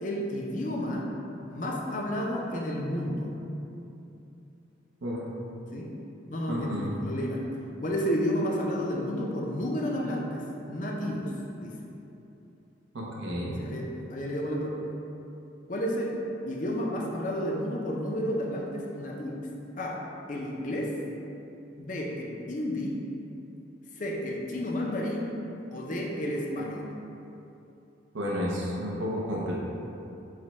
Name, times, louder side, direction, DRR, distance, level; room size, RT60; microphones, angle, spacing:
voice 1, 0.0-1.1 1.5-3.3 5.7-5.9 6.3-7.4 7.8-11.3 11.6-11.8 13.6-14.8 15.7-16.1 16.5-19.5 19.8-20.0 20.3-20.9 21.8-23.0 24.0-25.3 25.7-26.9, equal, 40° left, -1 dB, 0.5 m, -31 dB
voice 2, 6.5-6.9 12.9-13.6 28.1-29.5, equal, 80° right, -5 dB, 0.7 m, -31 dB
4.9 x 2.2 x 4.1 m, 2.8 s
head